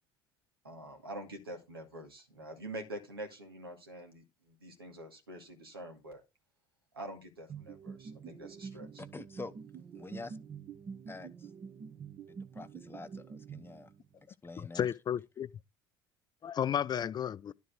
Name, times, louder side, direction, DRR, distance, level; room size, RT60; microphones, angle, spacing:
voice 1, 0.6-6.2 6.9-9.0, right 1 dB, 90° right, 2.2 m, -46 dB
sound 1, 7.5-14.2, right 6 dB, 40° right, 1.0 m, -47 dB
voice 2, 9.0-9.5 10.0-10.4 11.1-11.5 12.3-13.9 14.4-14.9, left 3 dB, 20° left, 0.8 m, -46 dB
voice 3, 14.6-15.5 16.4-17.5, left 9 dB, 35° left, 0.5 m, -33 dB
11.5 x 4.7 x 5.9 m
figure-of-eight pair, 60°, 12 cm